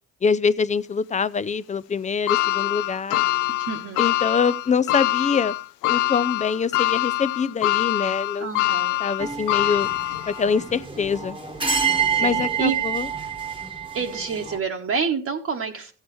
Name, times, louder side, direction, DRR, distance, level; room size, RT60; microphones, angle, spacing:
voice 1, 0.2-3.2 4.0-5.6 5.9-8.5 9.0-9.9 10.3-11.4 12.2-13.1, left 5 dB, 25° left, 0.5 m, -24 dB
sound 1, 2.3-10.6 11.1-11.2 12.4-12.5, left 16 dB, 85° left, 0.5 m, -24 dB
voice 2, 3.7-4.1 8.4-9.0 12.1-12.8 13.9-15.9, right 6 dB, 50° right, 1.2 m, -28 dB
sound 2, 9.2-14.6, right 7 dB, 15° right, 1.2 m, -27 dB
15.0 x 8.0 x 3.1 m
cardioid pair, 90°, 30 cm